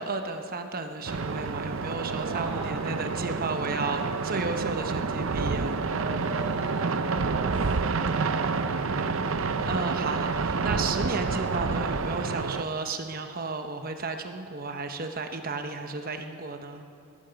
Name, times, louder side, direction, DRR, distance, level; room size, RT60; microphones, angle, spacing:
voice 1, 0.0-5.7 9.7-16.8, right 3 dB, 40° right, 6 dB, 1.0 m, -33 dB
sound 1, 1.1-12.6, right 4 dB, 65° right, 0.6 m, -28 dB
voice 2, 2.3-2.9 5.9-9.4, right 2 dB, 15° right, -9 dB, 2.5 m, -42 dB
18.5 x 14.0 x 5.2 m, 2.5 s
head